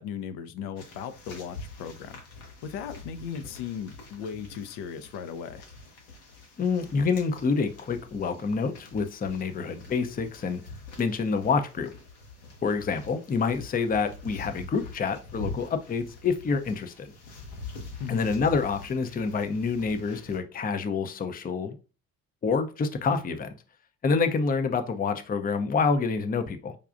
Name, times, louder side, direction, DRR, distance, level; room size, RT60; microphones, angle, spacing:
voice 1, 0.0-2.2 2.6-5.7 18.0-18.3, left 7 dB, 65° left, 0.5 m, -37 dB
sound 1, 0.8-20.4, left 3 dB, 80° left, 1.0 m, -45 dB
voice 2, 6.6-10.6 11.0-11.9 12.6-17.1 18.1-21.8 22.4-23.5 24.0-26.7, left 5 dB, 20° left, 0.5 m, -27 dB
4.9 x 2.3 x 2.5 m
hypercardioid pair, 50°, 43 cm